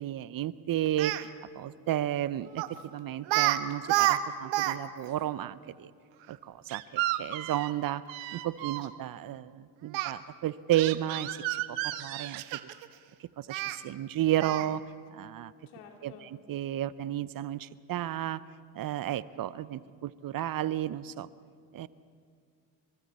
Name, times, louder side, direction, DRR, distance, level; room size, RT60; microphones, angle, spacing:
voice 1, 0.0-2.6 2.9-5.9 6.3-8.0 8.3-12.4 13.2-14.8 15.1-15.5 16.0-18.4 18.7-21.3 21.7-21.9, right 12 dB, 45° right, 17 dB, 0.7 m, -32 dB
Speech, 0.9-1.2 2.6-2.8 3.3-3.6 3.8-4.8 5.0-5.1 6.7-8.9 9.9-10.1 10.7-12.9 13.5-13.8 14.4-14.8, right 16 dB, 70° right, 1.1 m, -30 dB
voice 2, 14.3-14.7 15.7-16.3, left 6 dB, 80° left, 3 dB, 2.8 m, -52 dB
27.5 x 23.5 x 4.3 m, 2.1 s
hypercardioid pair, 65°, 47 cm